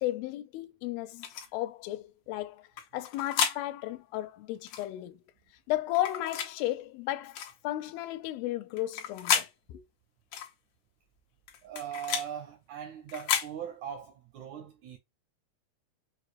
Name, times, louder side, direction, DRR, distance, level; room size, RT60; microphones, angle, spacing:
voice 1, 0.0-2.7 2.9-5.2 5.7-9.8, left 15 dB, 90° left, 2.4 m, -34 dB
sound 1, 1.2-1.5 2.8-3.6 4.6-4.9 5.9-6.5 7.3-7.5 8.8-9.5 10.3-10.5 11.5-12.3 13.1-13.5, left 8 dB, 65° left, 2.1 m, -31 dB
voice 2, 11.6-15.0, right 9 dB, 80° right, 1.7 m, -40 dB
6.7 x 2.4 x 2.5 m
omnidirectional pair, 4.1 m